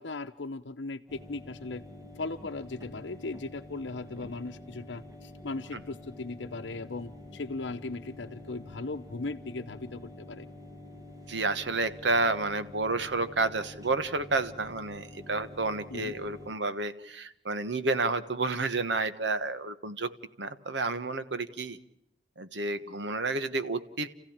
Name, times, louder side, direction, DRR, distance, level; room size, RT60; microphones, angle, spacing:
voice 1, 0.0-1.8 2.1-10.5 15.9-16.1, left 3 dB, 80° left, 5 dB, 0.8 m, -38 dB
sound 1, 1.1-16.5, left 1 dB, 20° right, 1.9 m, -48 dB
voice 2, 11.3-20.1 20.4-21.8 22.4-24.1, right 3 dB, 75° right, 11 dB, 1.4 m, -30 dB
29.5 x 15.5 x 8.8 m, 0.83 s
head